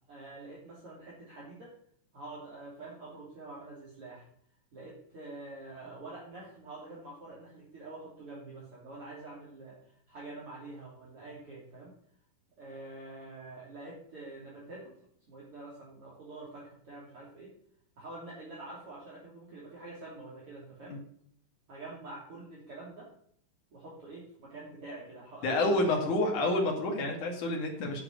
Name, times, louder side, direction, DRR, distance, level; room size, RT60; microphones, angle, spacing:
voice 1, 0.1-1.7 2.1-4.3 4.7-9.8 10.1-11.9 12.6-14.9 15.3-17.5 18.0-20.9 21.7-23.1 23.7-26.6, right 2 dB, 35° right, -6 dB, 3.4 m, -46 dB
voice 2, 25.4-28.0, left 2 dB, 50° left, 1 dB, 3.2 m, -29 dB
9.3 x 7.8 x 6.6 m, 0.64 s
omnidirectional pair, 5.0 m